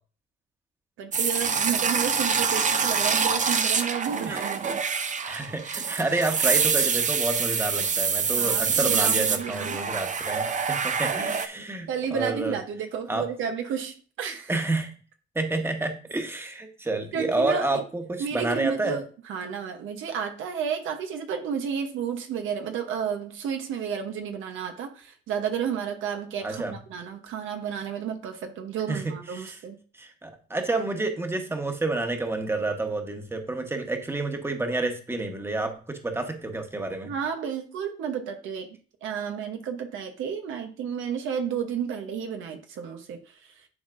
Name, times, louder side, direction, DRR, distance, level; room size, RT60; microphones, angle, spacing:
voice 1, 1.0-4.8 8.4-9.8 11.1-11.3 11.9-14.5 17.1-17.8 18.2-19.0 19.3-29.8 37.1-43.2, right 7 dB, 85° right, 1.0 m, -32 dB
sound 1, 1.1-11.5, right 6 dB, 40° right, 0.7 m, -25 dB
voice 2, 5.3-12.6 13.1-13.3 14.5-15.0 15.3-19.0 26.4-26.8 28.9-29.6 29.9-37.1, right 2 dB, 10° right, 1.2 m, -29 dB
11.0 x 4.0 x 2.6 m
cardioid pair, 90°, 20 cm